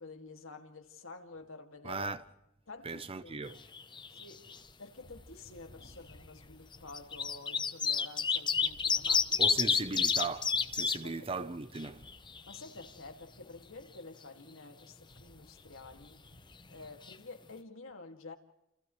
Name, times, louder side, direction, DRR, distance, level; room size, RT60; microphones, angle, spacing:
voice 1, 0.0-2.0 2.7-3.4 4.1-9.6 11.0-11.3 12.5-16.2 16.7-18.3, left 3 dB, 70° left, 2.3 m, -50 dB
voice 2, 1.8-2.2 2.8-3.6 9.4-12.0, right 3 dB, 25° right, 0.7 m, -38 dB
sound 1, 3.5-4.2 4.5-4.6 5.7-5.8 6.7-11.0 11.4-11.5 11.8-12.9 16.7-16.8 17.0-17.1, left 6 dB, 20° left, 0.8 m, -29 dB
sound 2, 5.0-7.3 8.4-10.8 11.8-14.1 14.7-17.0, equal, 55° left, 5.6 m, -59 dB
29.5 x 28.5 x 3.2 m
head